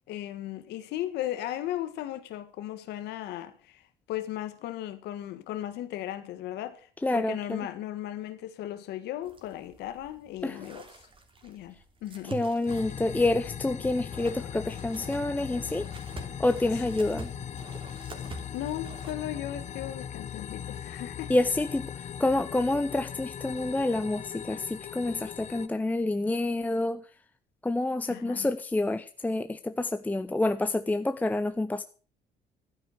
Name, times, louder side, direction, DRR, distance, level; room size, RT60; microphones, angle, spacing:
voice 1, 0.1-10.9 11.4-11.7 12.0-12.4 16.7-16.8 18.5-21.3 28.1-28.5, left 13 dB, 80° left, 1.5 m, -36 dB
voice 2, 7.0-7.6 10.4-10.6 12.2-15.9 16.4-17.3 21.3-27.0 27.6-31.8, left 2 dB, 10° left, 0.6 m, -28 dB
sound 1, 9.2-19.1, right 3 dB, 30° right, 3.1 m, -47 dB
sound 2, 12.7-25.7, left 9 dB, 45° left, 1.0 m, -39 dB
12.5 x 9.5 x 6.3 m
cardioid pair, 110°, 17 cm